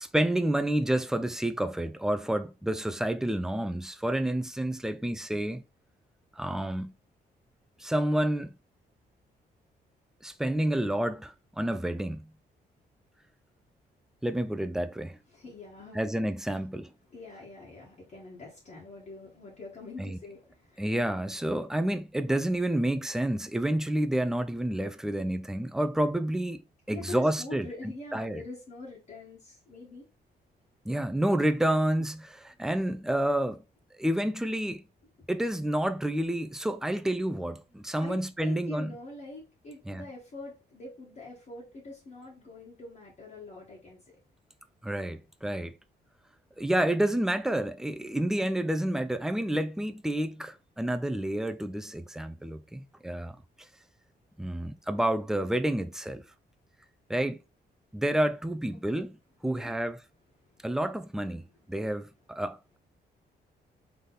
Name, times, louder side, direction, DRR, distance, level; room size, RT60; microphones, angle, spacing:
voice 1, 0.0-5.6 6.4-6.9 7.8-8.5 10.2-12.3 14.2-15.2 15.9-16.9 20.0-20.2 20.8-26.6 26.9-27.7 28.1-28.4 30.9-33.6 34.0-34.8 35.3-38.9 39.9-40.0 44.8-45.7 46.6-53.4 54.4-56.2 57.1-57.4 57.9-59.2 59.4-60.0 60.6-61.4 61.7-62.8, right 1 dB, 5° right, 0.3 m, -29 dB
voice 2, 15.3-16.3 17.1-20.9 26.9-30.0 32.0-32.1 38.0-44.2 58.9-59.0 59.5-59.7 60.5-60.6, left 2 dB, 45° left, 1.5 m, -44 dB
4.0 x 3.4 x 4.0 m
wide cardioid pair, 145°, 17 cm